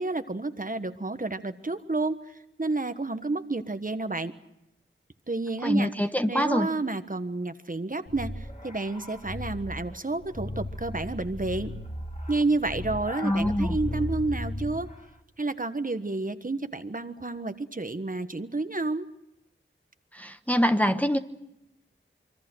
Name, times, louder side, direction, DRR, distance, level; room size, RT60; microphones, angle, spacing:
voice 1, 0.0-4.3 5.3-5.9 6.3-11.7 12.3-14.9 15.4-19.1, right 2 dB, 40° right, 9 dB, 1.4 m, -30 dB
voice 2, 5.6-6.7 13.2-13.8 20.1-21.2, equal, 5° left, 7 dB, 1.2 m, -25 dB
sound 1, 8.1-14.9, left 1 dB, 35° left, 2.8 m, -36 dB
26.0 x 24.0 x 6.3 m, 0.86 s
wide cardioid pair, 40°, 21 cm